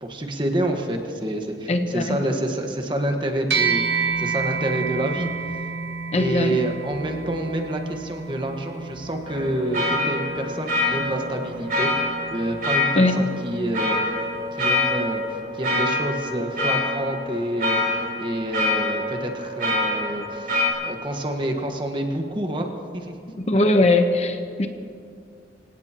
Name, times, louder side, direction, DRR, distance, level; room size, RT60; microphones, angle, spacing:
voice 1, 0.0-5.3 6.1-14.0 14.6-17.8 18.2-20.5 20.8-23.1, right 1 dB, 30° right, 3 dB, 1.4 m, -28 dB
voice 2, 1.7-2.2 6.1-6.6 13.0-13.2 23.4-24.7, left 2 dB, 40° left, 6 dB, 1.0 m, -20 dB
sound 1, 3.5-13.1, right 5 dB, 80° right, 1.6 m, -30 dB
sound 2, 9.3-20.7, left 2 dB, 55° right, 3.4 m, -26 dB
26.0 x 17.5 x 3.0 m, 2.4 s
head